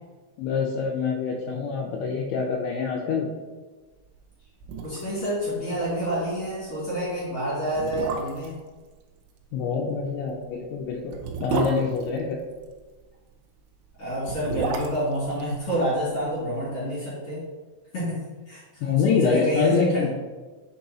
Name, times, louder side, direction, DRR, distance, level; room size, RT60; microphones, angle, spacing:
voice 1, 0.4-3.3 9.5-12.4 18.8-20.1, left 5 dB, 80° left, -1 dB, 2.8 m, -25 dB
sound 1, 4.2-4.3 4.6-5.3 5.5-5.6 6.0-6.2 6.9-7.0 7.7-8.6 10.1-12.8 14.1-16.3 16.6-16.7, right 5 dB, 80° right, 3.3 m, -31 dB
voice 2, 4.8-8.6 14.0-17.4 17.9-20.1, equal, 40° left, -8 dB, 2.4 m, -28 dB
9.2 x 5.4 x 2.9 m, 1.3 s
omnidirectional pair, 5.8 m